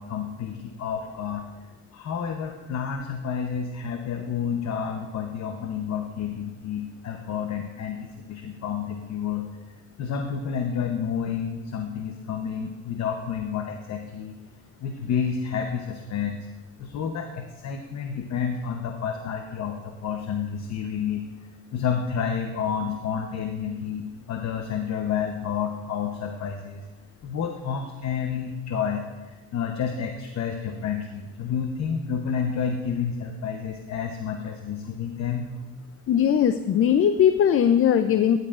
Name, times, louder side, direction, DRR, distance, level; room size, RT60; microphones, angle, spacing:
voice 1, 0.0-1.4 1.9-9.5 10.0-14.4 14.8-16.5 16.8-21.2 21.7-26.9 27.2-29.0 29.5-35.5, left 7 dB, 60° left, 4 dB, 0.9 m, -30 dB
voice 2, 36.1-38.4, left 9 dB, 45° left, 10 dB, 0.5 m, -19 dB
12.5 x 11.0 x 2.5 m, 1.2 s
cardioid pair, 90°, 30 cm